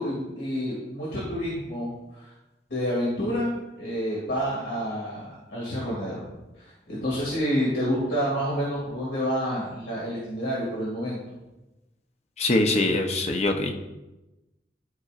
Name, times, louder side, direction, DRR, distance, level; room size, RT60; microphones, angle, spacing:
voice 1, 0.0-2.3 2.7-3.5 3.8-6.3 6.6-11.2, equal, 80° left, -7 dB, 2.3 m, -29 dB
voice 2, 12.4-13.7, left 2 dB, 35° left, 4 dB, 0.8 m, -23 dB
13.0 x 5.2 x 2.5 m, 1.0 s
head